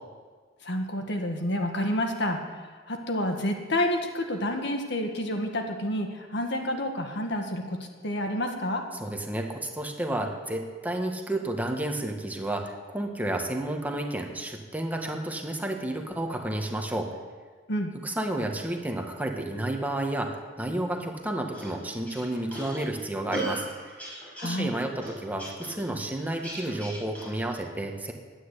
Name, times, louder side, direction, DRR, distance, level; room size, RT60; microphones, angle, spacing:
voice 1, 0.6-8.8 17.7-17.9 24.4-24.7, left 1 dB, 65° left, 4 dB, 1.7 m, -29 dB
voice 2, 9.0-17.1 18.0-23.7 24.4-28.1, right 1 dB, 10° right, 2 dB, 1.5 m, -31 dB
sound 1, 21.5-27.6, right 1 dB, 10° left, 5.3 m, -38 dB
11.5 x 10.0 x 8.3 m, 1.5 s
head